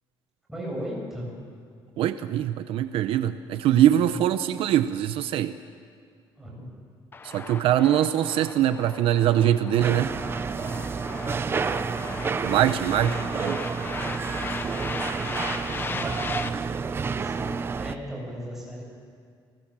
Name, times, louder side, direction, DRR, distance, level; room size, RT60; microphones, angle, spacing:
voice 1, 0.5-1.3 4.1-4.2 6.4-6.8 12.8-13.2 15.8-16.3 17.1-18.8, equal, 5° right, -3 dB, 7.7 m, -37 dB
voice 2, 2.0-5.5 7.2-10.1 12.4-13.6, right 11 dB, 70° right, 11 dB, 0.8 m, -23 dB
sound 1, 7.1-16.5, left 4 dB, 25° left, 0.9 m, -37 dB
sound 2, 9.8-18.0, right 5 dB, 25° right, 0.7 m, -30 dB
28.5 x 20.5 x 7.5 m, 2.2 s
cardioid pair, 170°, 10 cm